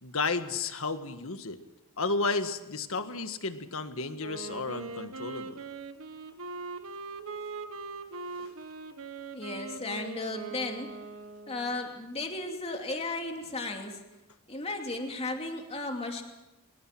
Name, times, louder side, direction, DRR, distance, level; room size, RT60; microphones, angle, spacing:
voice 1, 0.0-1.6 2.0-5.6 8.4-8.5, left 3 dB, 65° left, 9 dB, 1.7 m, -32 dB
Wind instrument woodwind instrument, 4.2-11.9, right 4 dB, 70° right, 1.6 m, -41 dB
voice 2, 9.3-11.0 11.5-14.0 14.5-16.2, left 2 dB, 30° left, 3 dB, 2.8 m, -35 dB
24.0 x 22.0 x 6.0 m, 1.0 s
head